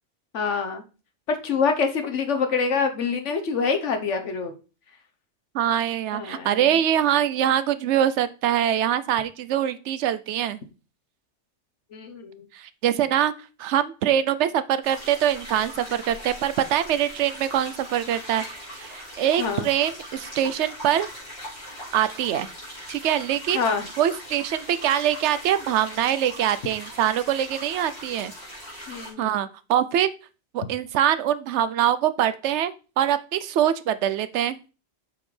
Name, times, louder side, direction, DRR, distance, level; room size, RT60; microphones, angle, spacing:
voice 1, 0.3-0.8 1.3-4.5 6.1-6.6 11.9-12.4 19.4-19.7 23.5-23.9 28.9-29.4, left 5 dB, 90° left, 6 dB, 1.3 m, -26 dB
voice 2, 5.5-10.6 12.5-13.3 13.6-18.4 18.8-21.1 21.9-22.5 22.9-23.6 24.0-28.3 29.2-30.1 30.5-34.6, right 10 dB, 75° right, 14 dB, 0.9 m, -23 dB
sound 1, 14.8-29.1, equal, 50° left, 3.9 m, -40 dB
7.7 x 6.3 x 3.2 m, 0.33 s
omnidirectional pair, 1.2 m